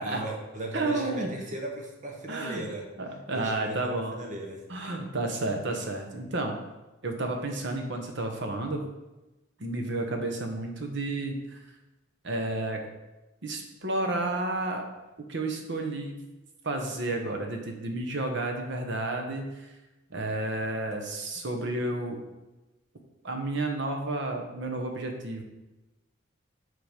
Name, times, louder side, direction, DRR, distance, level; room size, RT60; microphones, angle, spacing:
voice 1, 0.0-2.9 3.3-4.6, right 1 dB, 40° right, 1 dB, 1.3 m, -37 dB
voice 2, 0.7-1.3 2.3-2.7 3.0-4.2 4.7-6.5 7.0-8.8 9.6-11.6 12.2-12.8 13.4-14.8 15.3-16.2 16.6-19.7 20.1-22.2 23.2-25.4, right 2 dB, 60° right, 4 dB, 1.1 m, -31 dB
8.0 x 4.0 x 5.1 m, 1.1 s
head